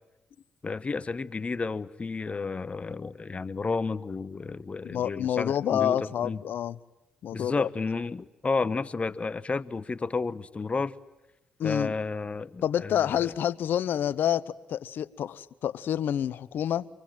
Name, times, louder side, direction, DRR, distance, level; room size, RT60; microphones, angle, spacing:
voice 1, 0.6-6.4 7.3-10.9 11.6-13.3, left 4 dB, 35° left, 1.0 m, -31 dB
voice 2, 4.8-6.8 7.2-7.7 11.6-11.9 12.6-16.9, left 10 dB, 70° left, 0.9 m, -28 dB
27.0 x 23.5 x 9.1 m
supercardioid pair, 50°, 4 cm